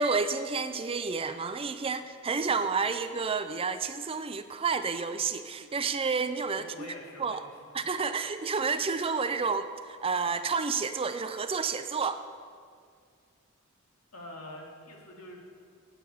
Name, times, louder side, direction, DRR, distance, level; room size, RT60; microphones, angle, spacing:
voice 1, 0.0-6.9 7.2-7.4 7.7-12.2, right 5 dB, 25° right, 10 dB, 0.5 m, -30 dB
voice 2, 6.6-7.5 14.1-15.4, left 1 dB, 75° left, -1 dB, 2.5 m, -45 dB
17.5 x 8.7 x 5.5 m, 2.1 s
head